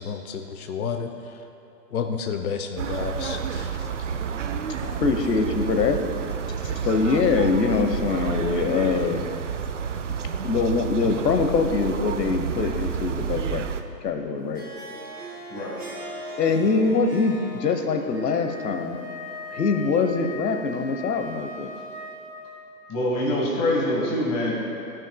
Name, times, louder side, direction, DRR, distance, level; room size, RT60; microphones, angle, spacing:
voice 1, 0.0-1.5 1.9-3.9, left 6 dB, 60° left, 5 dB, 0.7 m, -31 dB
sound 1, 2.8-13.8, right 7 dB, 50° right, 0.5 m, -30 dB
voice 2, 4.9-6.0 6.6-9.2 10.4-13.6 14.0-14.6 16.4-19.0 19.5-21.7, left 4 dB, 75° left, 6 dB, 1.1 m, -23 dB
Harp, 14.4-19.8, equal, 10° right, 1.6 m, -41 dB
Wind instrument woodwind instrument, 18.1-22.7, left 2 dB, 35° right, 1.0 m, -39 dB
voice 3, 22.9-24.5, left 1 dB, 10° left, -4 dB, 1.0 m, -24 dB
15.5 x 5.9 x 2.2 m, 2.9 s
hypercardioid pair, 155°, 49 cm